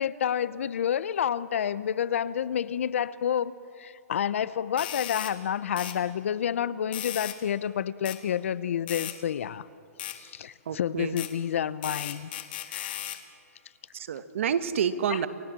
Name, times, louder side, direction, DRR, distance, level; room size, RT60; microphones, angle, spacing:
voice 1, 0.0-3.5 3.8-9.7 10.1-12.3 12.7-13.1 15.1-15.3, left 9 dB, 60° left, 17 dB, 0.7 m, -29 dB
sound 1, 4.8-5.3 5.8-6.0 6.9-7.4 8.1-8.2 8.9-9.2 10.0-10.2 11.2-11.3 11.8-13.2, left 12 dB, 40° left, 1.6 m, -36 dB
voice 2, 10.7-11.1 13.9-15.3, right 8 dB, 55° right, 12 dB, 1.2 m, -28 dB
29.5 x 16.5 x 7.5 m, 2.8 s
hypercardioid pair, 170°, 8 cm